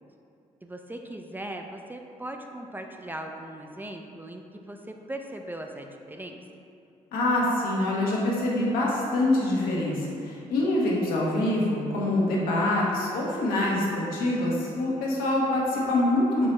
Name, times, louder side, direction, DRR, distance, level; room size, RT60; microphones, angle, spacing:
voice 1, 0.6-6.4, right 1 dB, 15° right, 3 dB, 0.3 m, -39 dB
voice 2, 7.1-16.5, left 1 dB, 85° left, -4 dB, 0.8 m, -25 dB
4.4 x 3.1 x 3.1 m, 2.6 s
supercardioid pair, 60°, 15 cm